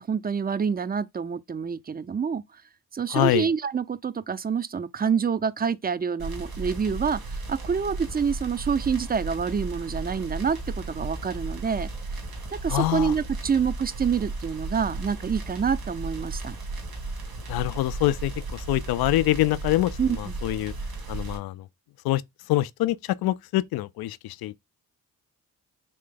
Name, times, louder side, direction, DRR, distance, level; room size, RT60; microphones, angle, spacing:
voice 1, 0.0-2.4 2.9-11.9 12.5-16.6 20.0-20.3, right 6 dB, 25° right, 0.5 m, -27 dB
voice 2, 3.1-3.5 12.7-13.1 17.5-20.7 21.1-21.7 22.0-22.2 22.5-24.6, left 16 dB, 70° left, 0.5 m, -25 dB
sound 1, 6.2-21.4, right 3 dB, 65° right, 2.1 m, -35 dB
3.8 x 3.2 x 3.8 m
supercardioid pair, 50°, 39 cm